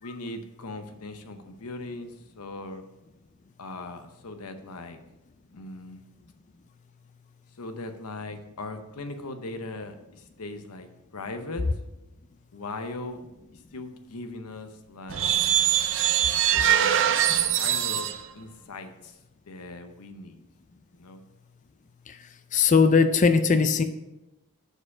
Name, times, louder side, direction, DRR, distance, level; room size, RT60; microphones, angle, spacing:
voice 1, 0.0-2.8 3.6-5.0 5.5-6.0 7.6-11.6 12.5-13.2 13.7-15.3 16.5-16.9 17.5-19.2 19.5-20.4 20.9-21.2, left 2 dB, 90° left, 8 dB, 0.8 m, -39 dB
sound 1, 15.1-18.2, right 10 dB, 60° right, 0.5 m, -23 dB
voice 2, 22.5-23.8, left 5 dB, 35° left, 9 dB, 0.4 m, -19 dB
6.5 x 5.0 x 5.5 m, 0.96 s
head